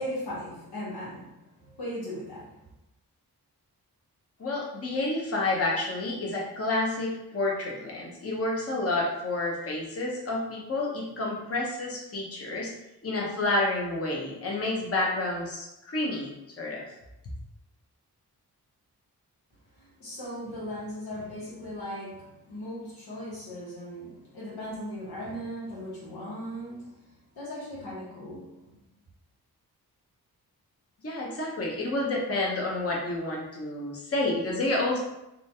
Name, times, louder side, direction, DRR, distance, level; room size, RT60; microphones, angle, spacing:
voice 1, 0.0-2.7 19.7-27.0 27.3-28.7, equal, 85° left, -7 dB, 1.2 m, -38 dB
voice 2, 4.4-12.7 13.0-16.8 31.0-35.0, left 2 dB, 40° left, -3 dB, 0.9 m, -29 dB
3.0 x 2.3 x 2.7 m, 0.88 s
cardioid pair, 45°, 38 cm